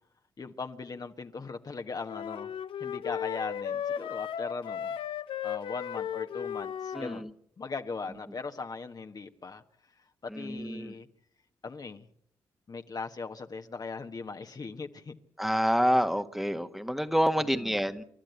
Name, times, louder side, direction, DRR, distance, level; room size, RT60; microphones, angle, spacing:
voice 1, 0.4-2.5 2.8-5.0 5.4-7.3 7.6-9.6 10.2-11.1 11.6-12.1 12.7-15.2 17.4-17.8, left 4 dB, 45° left, 1.4 m, -39 dB
sound 1, 2.0-7.2, left 9 dB, 70° left, 0.7 m, -35 dB
voice 2, 6.9-7.3 10.3-10.9 15.4-18.0, equal, 5° right, 1.5 m, -27 dB
29.0 x 12.0 x 8.2 m
hypercardioid pair, 45°, 9 cm